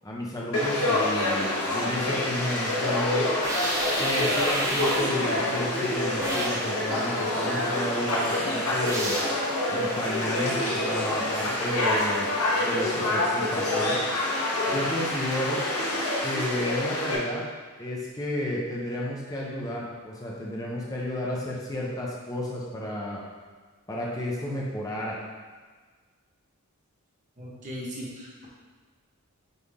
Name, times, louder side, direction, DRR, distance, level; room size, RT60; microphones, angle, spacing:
voice 1, 0.0-3.3 4.0-9.2 9.7-12.3 12.6-14.0 14.7-15.6 16.2-17.4 17.8-23.2 23.9-25.2, left 1 dB, 15° left, -4 dB, 0.9 m, -32 dB
Conversation / Crowd, 0.5-17.2, left 1 dB, 85° left, 1.4 m, -27 dB
sound 1, 3.4-5.2 6.2-6.7 8.9-9.4, right 1 dB, 15° right, 0.7 m, -31 dB
voice 2, 27.4-28.5, equal, 35° right, -5 dB, 1.4 m, -38 dB
8.1 x 3.6 x 3.7 m, 1.4 s
head